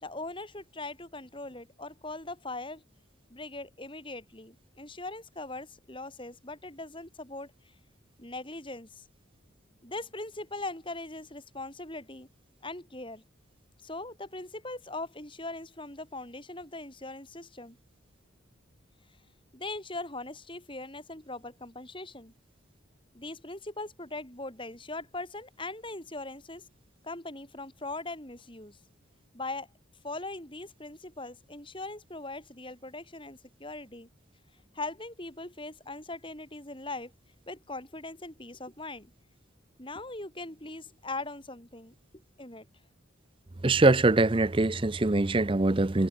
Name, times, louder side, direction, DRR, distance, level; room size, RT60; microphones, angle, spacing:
voice 1, 0.0-2.8 3.3-7.5 8.2-9.0 9.8-12.3 12.6-13.2 13.8-17.8 19.5-22.3 23.1-26.6 27.0-28.8 29.3-29.7 30.0-34.1 34.7-37.1 37.5-39.1 39.8-41.9 42.4-42.7, left 2 dB, 25° left, 4.2 m, -40 dB
voice 2, 43.6-46.1, right 2 dB, 25° right, 0.6 m, -23 dB
head